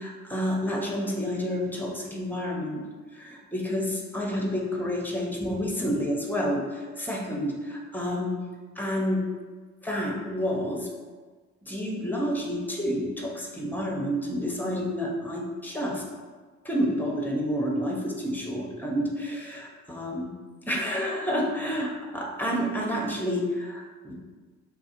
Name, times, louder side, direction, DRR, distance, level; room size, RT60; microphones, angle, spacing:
voice 1, 0.0-2.8 3.1-8.3 8.8-9.2 9.8-10.9 11.7-16.0 16.6-20.3 20.7-24.1, equal, 5° left, -2 dB, 0.7 m, -29 dB
3.5 x 2.3 x 2.9 m, 1.4 s
hypercardioid pair, 50°, 37 cm